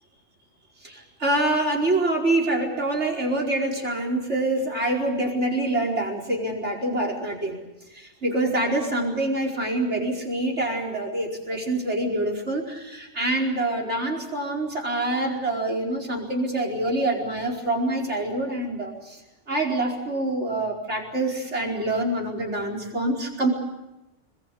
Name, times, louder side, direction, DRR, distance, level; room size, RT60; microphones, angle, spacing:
voice 1, 0.8-7.6 7.9-19.2 19.5-23.5, right 1 dB, 70° right, 3 dB, 5.2 m, -26 dB
27.0 x 21.5 x 8.5 m, 0.97 s
omnidirectional pair, 1.2 m